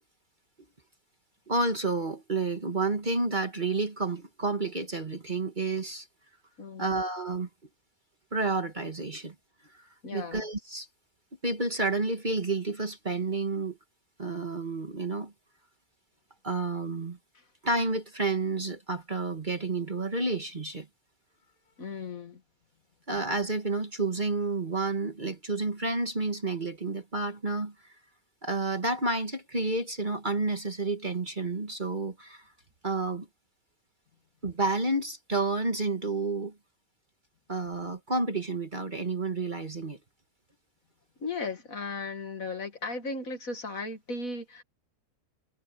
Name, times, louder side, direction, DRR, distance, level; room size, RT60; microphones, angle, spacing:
voice 1, 1.5-6.1 6.8-7.5 8.3-9.3 9.7-9.8 10.1-10.9 11.4-13.8 14.2-15.3 16.4-17.2 17.6-20.9 23.1-27.9 28.4-32.4 32.8-33.3 34.4-36.5 37.5-40.0, right 3 dB, 30° right, 1.9 m, -30 dB
voice 2, 6.6-6.9 9.1-9.2 10.0-10.4 21.8-22.4 41.2-44.6, left 3 dB, 60° left, 2.6 m, -36 dB
omnidirectional pair, 1.7 m